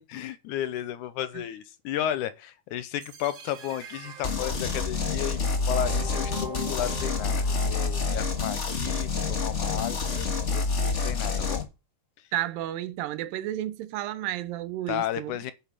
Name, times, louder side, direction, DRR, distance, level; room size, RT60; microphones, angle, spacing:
voice 1, 0.0-5.4 5.7-11.6 14.9-15.5, left 11 dB, 80° left, 2.0 m, -33 dB
sound 1, 3.0-9.0, right 5 dB, 55° right, 2.2 m, -44 dB
sound 2, 4.2-11.6, left 4 dB, 35° left, 1.1 m, -28 dB
voice 2, 12.3-15.5, right 13 dB, 85° right, 2.5 m, -32 dB
10.5 x 5.0 x 7.4 m
omnidirectional pair, 4.0 m